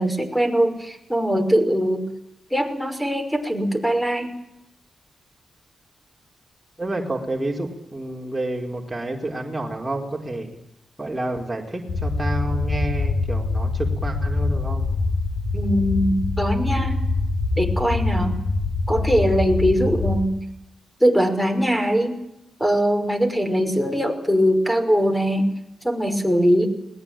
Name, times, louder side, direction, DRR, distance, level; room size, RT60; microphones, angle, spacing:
voice 1, 0.0-2.0 2.5-4.3 15.5-17.0 17.6-18.4 18.9-20.3 21.0-22.2 22.6-25.5 25.8-26.7, equal, 5° left, 7 dB, 5.6 m, -21 dB
voice 2, 6.8-10.6 11.0-14.9, right 1 dB, 15° right, -1 dB, 4.7 m, -29 dB
sound 1, 11.9-20.2, left 3 dB, 90° left, 5.2 m, -24 dB
21.0 x 19.5 x 9.2 m, 0.84 s
cardioid pair, 60°, 0 cm